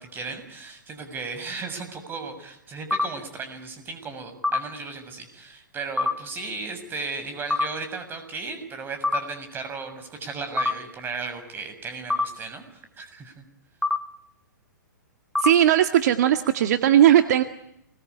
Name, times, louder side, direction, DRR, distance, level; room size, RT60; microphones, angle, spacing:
voice 1, 0.0-13.4, right 4 dB, 20° right, 8 dB, 7.2 m, -35 dB
sound 1, 2.9-3.1 4.4-4.6 6.0-6.1 7.5-7.7 9.0-9.2 10.6-10.7 12.1-12.3 13.8-14.0 15.4-15.5, left 3 dB, 5° left, 1.1 m, -22 dB
voice 2, 15.4-17.4, right 11 dB, 60° right, 8 dB, 1.9 m, -18 dB
28.5 x 22.0 x 8.5 m, 0.76 s
hypercardioid pair, 125°, 10 cm